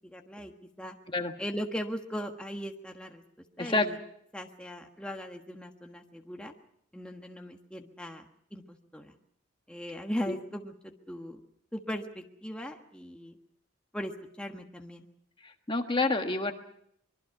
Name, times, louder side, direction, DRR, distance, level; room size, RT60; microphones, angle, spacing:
voice 1, 0.0-1.0 1.4-3.2 3.6-4.0 4.3-6.5 6.9-8.2 8.5-9.2 9.7-11.4 11.7-13.4 13.9-15.1, equal, 5° left, 2 dB, 1.4 m, -39 dB
voice 2, 15.4-16.5, left 2 dB, 25° left, 5 dB, 1.4 m, -28 dB
25.0 x 22.5 x 5.9 m, 0.71 s
head